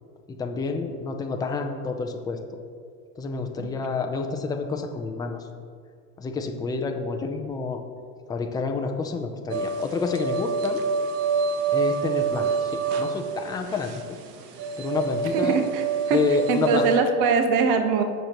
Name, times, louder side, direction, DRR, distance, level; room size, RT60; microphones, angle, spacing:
voice 1, 0.4-2.4 3.2-5.4 6.2-7.8 8.3-10.8 11.7-12.7 13.0-13.9 14.8-15.6 16.1-16.8, left 4 dB, 10° left, 3 dB, 0.5 m, -28 dB
sound 1, 9.5-17.0, right 5 dB, 85° right, 1.1 m, -27 dB
voice 2, 15.4-16.2 16.5-18.0, right 5 dB, 60° right, 6 dB, 1.2 m, -22 dB
18.0 x 6.7 x 3.0 m, 2.2 s
supercardioid pair, 135°, 46 cm